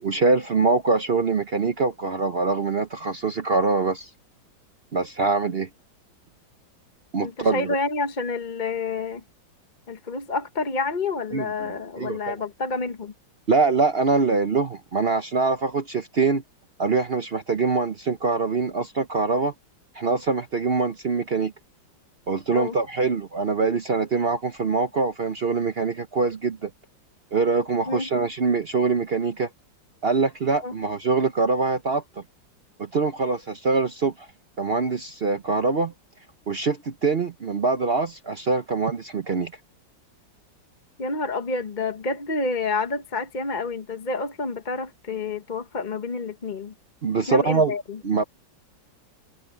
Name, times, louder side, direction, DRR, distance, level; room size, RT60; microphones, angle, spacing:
voice 1, 0.0-4.1 4.9-5.7 7.1-7.7 11.3-11.7 12.0-12.4 13.5-16.4 16.8-19.5 19.9-21.5 22.3-26.7 27.3-29.5 30.0-32.0 32.8-34.3 34.6-35.9 36.5-39.5 47.0-47.7 48.0-48.2, right 4 dB, 50° right, 0.7 m, -24 dB
voice 2, 7.2-9.2 9.9-13.1 22.5-22.7 27.9-28.1 30.6-30.8 41.0-46.7 47.3-48.0, left 3 dB, 30° left, 0.9 m, -29 dB
omnidirectional pair, 2.0 m